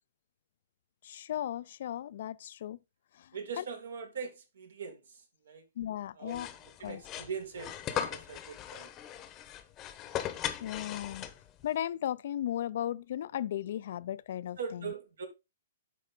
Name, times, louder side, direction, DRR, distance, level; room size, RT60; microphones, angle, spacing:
voice 1, 1.0-2.8 3.1-3.3 3.6-3.7 5.8-6.5 6.8-7.0 10.6-11.3 11.6-14.9, left 11 dB, 60° left, 0.4 m, -36 dB
voice 2, 3.3-5.6 6.2-6.5 6.8-8.9 14.6-15.3, right 6 dB, 80° right, 2.1 m, -41 dB
sound 1, 6.3-11.6, left 11 dB, 25° left, 0.9 m, -38 dB
8.3 x 4.9 x 3.7 m
hypercardioid pair, 150°, 0 cm